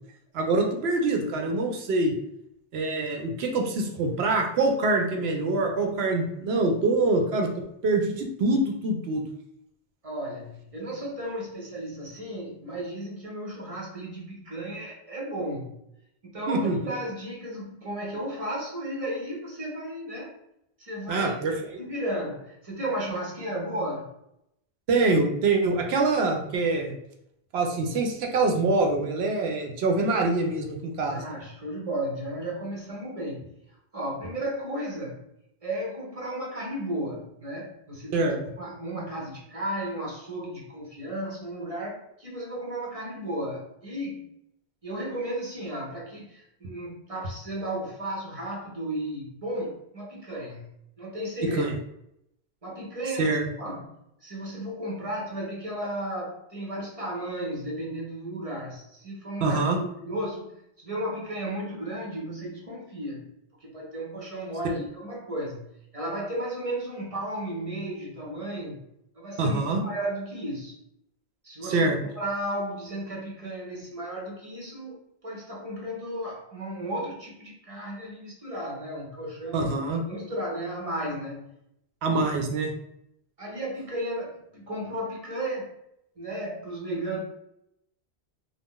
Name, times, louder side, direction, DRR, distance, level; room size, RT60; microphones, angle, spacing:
voice 1, 0.3-2.1 2.7-7.5 7.8-9.2 16.5-16.8 21.1-21.5 24.9-27.0 27.5-31.2 38.1-38.4 51.6-51.7 53.2-53.4 59.4-59.8 69.4-69.8 71.7-72.0 79.5-80.0 82.0-82.7, right 3 dB, 75° right, 2 dB, 0.8 m, -25 dB
voice 2, 10.0-15.7 16.2-20.3 20.8-21.4 21.8-24.1 31.1-33.5 33.9-35.2 35.6-44.3 44.8-50.7 51.0-51.7 52.6-53.3 53.6-63.3 63.6-65.7 65.9-68.8 69.1-70.8 71.4-71.9 72.1-79.7 80.1-81.5 82.1-82.3 83.4-85.7 86.2-87.2, right 1 dB, 40° right, -3 dB, 0.6 m, -34 dB
2.5 x 2.1 x 3.6 m, 0.79 s
omnidirectional pair, 1.1 m